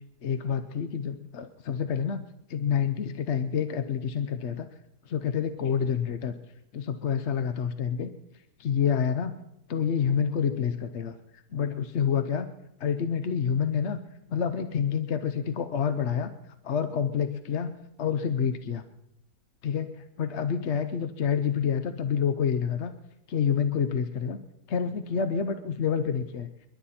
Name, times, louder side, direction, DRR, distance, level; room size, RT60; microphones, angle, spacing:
voice 1, 0.2-2.2 2.5-4.7 5.1-6.3 6.7-8.1 8.6-9.3 9.7-11.2 11.5-12.5 12.8-14.0 14.3-16.3 16.6-18.8 19.6-22.9 23.3-24.4 24.7-26.5, left 7 dB, 55° left, 10 dB, 0.7 m, -28 dB
28.0 x 11.5 x 4.3 m, 0.81 s
omnidirectional pair, 2.0 m